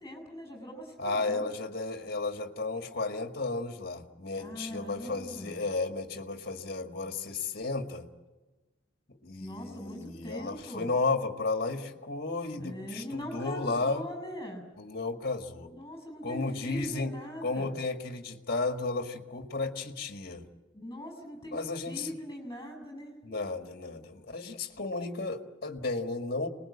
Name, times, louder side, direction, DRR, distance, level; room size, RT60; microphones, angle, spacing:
voice 1, 0.0-1.5 4.4-5.7 9.4-10.9 12.6-14.6 15.7-17.8 20.7-23.1, equal, 15° left, 4 dB, 6.7 m, -41 dB
voice 2, 1.0-8.1 9.1-14.1 14.8-15.7 16.2-17.1 17.4-20.5 21.5-22.2 23.2-26.5, left 3 dB, 50° left, 6 dB, 1.9 m, -33 dB
28.0 x 20.5 x 8.7 m, 1.2 s
head